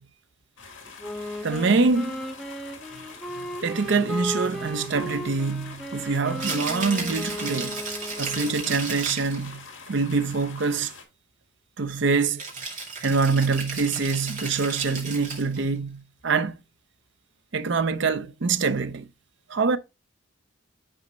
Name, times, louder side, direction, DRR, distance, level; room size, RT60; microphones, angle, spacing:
sound 1, 0.6-11.0, left 5 dB, 70° left, 2.0 m, -45 dB
Wind instrument woodwind instrument, 1.0-8.8, left 1 dB, ahead, 0.8 m, -36 dB
voice 1, 1.4-2.2 3.4-7.8 8.2-10.9 11.8-12.4 13.0-16.6 17.5-19.1 19.5-19.8, right 4 dB, 60° right, 0.6 m, -25 dB
Rattle (instrument), 6.3-9.5 12.4-15.6, right 4 dB, 40° right, 2.4 m, -34 dB
9.9 x 4.2 x 3.0 m
head